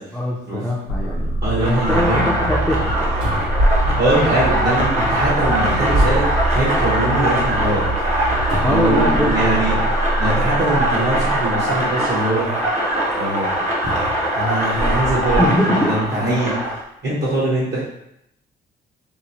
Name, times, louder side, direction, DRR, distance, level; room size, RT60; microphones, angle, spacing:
voice 1, 0.1-2.9 8.6-9.7 15.4-15.9 16.2-16.4, left 1 dB, 5° left, -5 dB, 0.4 m, -22 dB
sound 1, 0.9-11.8, right 1 dB, 85° left, 0.4 m, -25 dB
voice 2, 1.4-2.2 4.0-7.8 8.7-9.8 10.2-12.5 13.1-13.6 14.3-16.6 17.0-17.8, right 1 dB, 55° right, -8 dB, 1.0 m, -22 dB
sound 2, 1.6-16.8, right 1 dB, 35° right, 0.8 m, -22 dB
sound 3, 3.2-4.9 5.6-7.0 7.4-7.5 8.5-9.6 10.6-10.7 13.8-15.5 16.2-16.3, equal, 90° right, 1.2 m, -24 dB
2.9 x 2.0 x 2.7 m, 0.79 s
cardioid pair, 90°, 20 cm